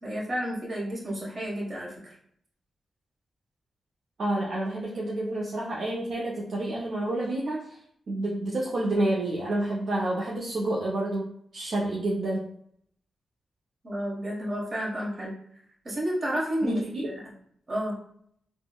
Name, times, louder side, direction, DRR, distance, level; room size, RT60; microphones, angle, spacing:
voice 1, 0.0-2.1 13.8-15.3 15.8-17.1 17.7-18.0, equal, 50° right, -4 dB, 1.1 m, -31 dB
voice 2, 4.2-7.8 8.1-11.2 11.5-12.4 16.6-17.1, right 1 dB, 70° right, -5 dB, 0.5 m, -29 dB
3.4 x 2.0 x 2.2 m, 0.67 s
cardioid pair, 55°, 0 cm